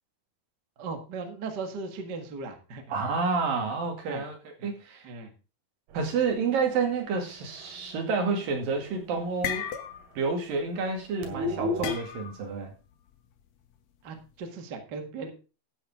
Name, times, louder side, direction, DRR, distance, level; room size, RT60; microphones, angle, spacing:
voice 1, 0.8-2.8 4.1-4.2 4.6-4.7 5.0-5.3 14.0-15.3, right 4 dB, 45° right, 1.5 m, -37 dB
voice 2, 2.9-5.1 5.9-9.7 10.2-12.7, right 4 dB, 70° right, 4.0 m, -29 dB
sound 1, 5.9-9.3 9.5-9.7 10.0-10.1 10.4-11.9, left 2 dB, 85° right, 3.8 m, -37 dB
sound 2, 8.6-8.9 9.2-10.3 10.5-10.8 11.8-12.5, left 9 dB, 65° left, 1.9 m, -35 dB
13.5 x 8.7 x 3.6 m
omnidirectional pair, 4.3 m